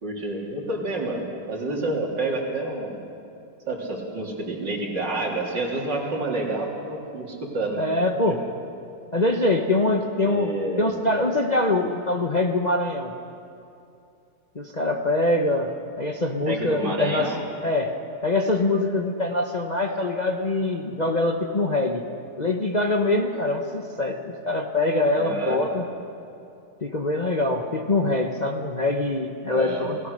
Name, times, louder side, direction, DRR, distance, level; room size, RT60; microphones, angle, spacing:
voice 1, 0.0-3.0 3.7-7.8 10.2-10.9 16.5-17.4 20.6-20.7 25.2-25.6 29.5-29.9, right 2 dB, 80° right, -1 dB, 3.8 m, -28 dB
voice 2, 7.8-8.4 9.1-10.5 10.8-13.1 14.5-15.7 16.0-17.3 17.6-17.9 18.2-22.0 22.4-25.8 26.8-30.0, left 2 dB, 30° left, 3 dB, 0.9 m, -24 dB
27.5 x 17.5 x 6.6 m, 2.6 s
omnidirectional pair, 1.9 m